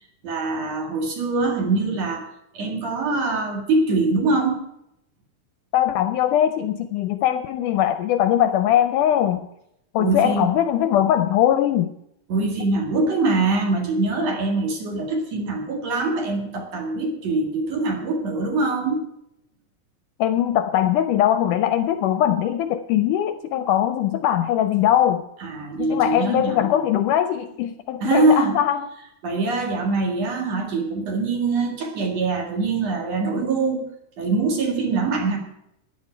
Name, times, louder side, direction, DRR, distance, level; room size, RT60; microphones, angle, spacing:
voice 1, 0.2-2.3 2.5-4.6 10.0-10.5 12.3-19.0 25.4-26.8 28.0-28.6 29.2-33.9 34.2-35.4, right 3 dB, 50° right, 2 dB, 2.9 m, -23 dB
voice 2, 5.7-9.5 9.9-11.9 20.2-25.2 25.8-28.9, left 11 dB, 80° left, 9 dB, 1.9 m, -21 dB
14.5 x 10.5 x 4.5 m, 0.78 s
omnidirectional pair, 4.1 m